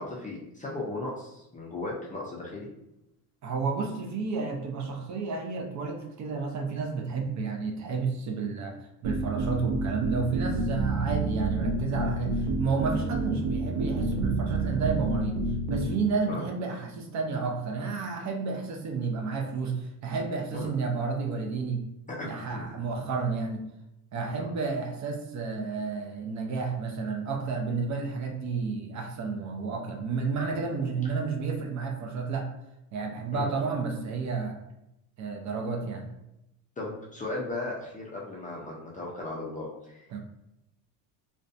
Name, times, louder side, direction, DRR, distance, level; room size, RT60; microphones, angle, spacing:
voice 1, 0.0-2.7 10.2-10.3 16.3-16.5 20.5-20.7 22.1-22.7 24.4-24.5 33.3-33.5 36.8-40.1, left 2 dB, 20° left, -4 dB, 0.4 m, -36 dB
voice 2, 3.4-8.8 9.0-15.4 15.7-21.8 22.2-23.6 24.1-32.5 32.9-34.6 35.2-36.1 40.1-40.2, right 4 dB, 40° right, 2 dB, 0.5 m, -31 dB
sound 1, 9.0-15.9, right 3 dB, 85° right, 0.7 m, -29 dB
2.5 x 2.2 x 2.4 m, 0.85 s
supercardioid pair, 105°, 44 cm